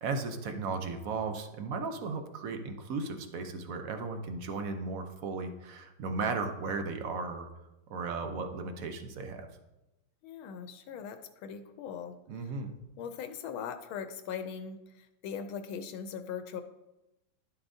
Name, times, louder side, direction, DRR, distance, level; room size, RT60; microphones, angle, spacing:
voice 1, 0.0-7.5 7.9-9.5 12.3-12.7, right 4 dB, 60° right, 6 dB, 0.9 m, -35 dB
voice 2, 10.2-12.2 13.0-16.6, left 7 dB, 85° left, 8 dB, 1.4 m, -40 dB
11.0 x 6.8 x 2.7 m, 0.98 s
omnidirectional pair, 2.2 m